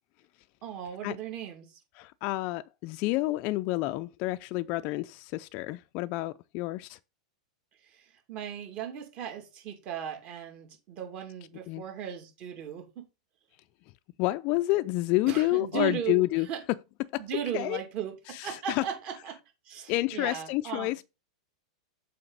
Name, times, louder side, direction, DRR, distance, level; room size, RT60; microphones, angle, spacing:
voice 1, 0.6-1.8 7.8-13.1 15.3-16.6 17.2-19.4 19.6-20.9, right 9 dB, 40° right, 2.6 m, -37 dB
voice 2, 2.0-7.0 11.7-11.8 14.2-16.5 17.1-17.3 17.5-17.8 18.3-18.9 19.9-21.0, left 19 dB, 40° left, 0.4 m, -29 dB
6.9 x 5.0 x 5.0 m
supercardioid pair, 145°, 4 cm